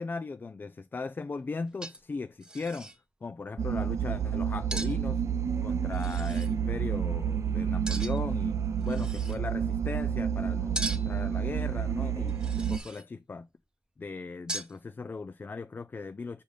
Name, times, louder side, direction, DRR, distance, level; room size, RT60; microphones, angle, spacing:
voice 1, 0.0-2.9 3.2-5.2 5.6-13.5 14.0-16.4, left 4 dB, 45° left, 0.4 m, -38 dB
sound 1, 1.3-1.4 1.8-2.2 2.4-3.0 4.7-5.0 5.9-6.5 7.9-8.3 8.8-9.4 10.7-11.2 12.3-13.1 14.5-14.8, right 2 dB, 15° right, 0.8 m, -38 dB
sound 2, 3.6-12.8, right 8 dB, 80° right, 0.5 m, -29 dB
5.3 x 4.9 x 3.9 m
cardioid pair, 65°, 5 cm